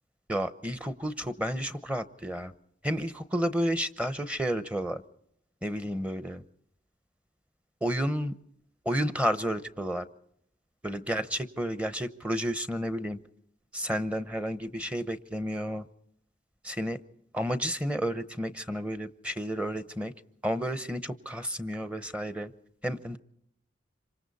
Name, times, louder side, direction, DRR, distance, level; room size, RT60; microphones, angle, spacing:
voice 1, 0.3-2.5 2.8-5.0 5.6-6.4 7.8-8.3 8.8-10.1 10.8-13.2 13.7-15.9 16.6-17.0 17.3-20.1 20.4-22.5 22.8-23.2, equal, 5° right, 11 dB, 0.8 m, -31 dB
27.0 x 25.0 x 4.1 m, 0.74 s
head